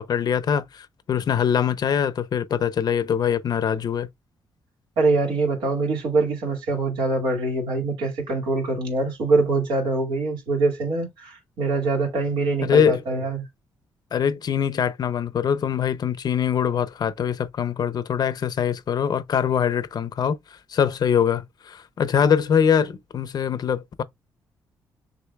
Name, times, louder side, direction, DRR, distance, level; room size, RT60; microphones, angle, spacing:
voice 1, 0.0-4.1 12.6-13.0 14.1-20.4 20.7-24.0, left 8 dB, 55° left, 0.6 m, -23 dB
voice 2, 5.0-13.5, right 3 dB, 85° right, 2.2 m, -24 dB
6.5 x 2.6 x 2.3 m
cardioid pair, 75°, 8 cm